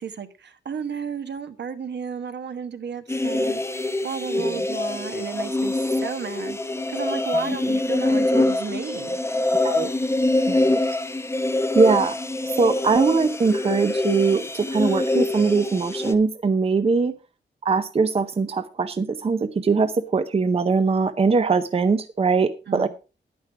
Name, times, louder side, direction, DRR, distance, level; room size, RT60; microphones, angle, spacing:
voice 1, 0.0-3.6 4.0-6.6 6.9-9.2 22.7-22.9, right 6 dB, 65° right, 9 dB, 1.2 m, -33 dB
sound 1, 3.1-16.1, left 2 dB, 15° left, 0.8 m, -24 dB
voice 2, 10.5-10.8 11.7-12.2 12.5-17.1 17.6-22.9, right 4 dB, 30° right, 10 dB, 0.6 m, -21 dB
10.5 x 9.5 x 4.6 m, 0.32 s
wide cardioid pair, 155°, 19 cm